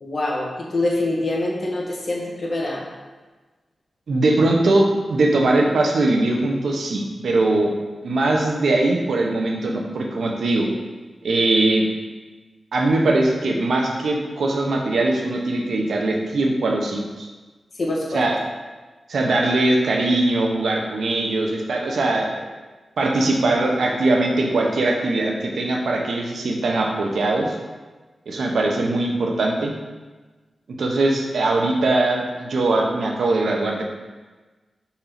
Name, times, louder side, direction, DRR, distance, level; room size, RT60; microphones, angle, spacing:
voice 1, 0.0-2.8 17.8-18.2, left 2 dB, 50° left, -2 dB, 1.4 m, -25 dB
voice 2, 4.1-7.7 8.0-10.7 11.2-11.9 12.7-17.3 18.1-18.4 19.1-22.5 23.0-27.6 28.3-29.7 30.8-33.8, right 2 dB, 85° right, 1 dB, 0.9 m, -21 dB
5.1 x 4.3 x 5.8 m, 1.3 s
wide cardioid pair, 130°, 0 cm